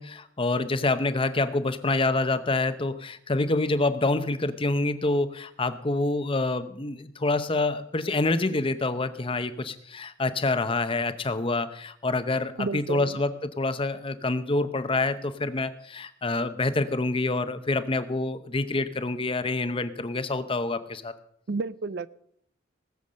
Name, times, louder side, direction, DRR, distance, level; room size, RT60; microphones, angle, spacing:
voice 1, 0.0-21.1, left 2 dB, 30° left, 11 dB, 0.7 m, -27 dB
voice 2, 12.6-13.2 21.5-22.1, right 3 dB, 55° right, 17 dB, 0.5 m, -31 dB
19.0 x 7.2 x 6.3 m, 0.68 s
head